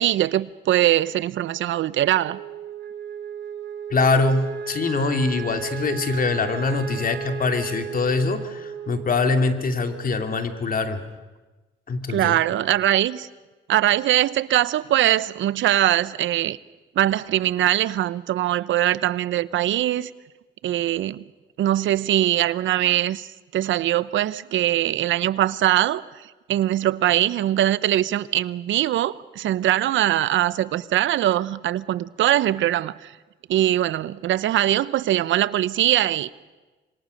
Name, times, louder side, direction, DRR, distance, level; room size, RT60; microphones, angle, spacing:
voice 1, 0.0-2.4 12.1-13.3 13.7-16.6 17.0-20.1 20.6-21.2 21.6-23.3 23.5-33.1 33.5-36.3, right 13 dB, 75° right, 0.8 m, -22 dB
Wind instrument woodwind instrument, 2.2-10.6, right 6 dB, 60° right, 2.9 m, -35 dB
voice 2, 3.9-11.0 11.9-12.4, left 3 dB, 45° left, 2.7 m, -23 dB
27.0 x 24.0 x 6.6 m
cardioid pair, 90°, 20 cm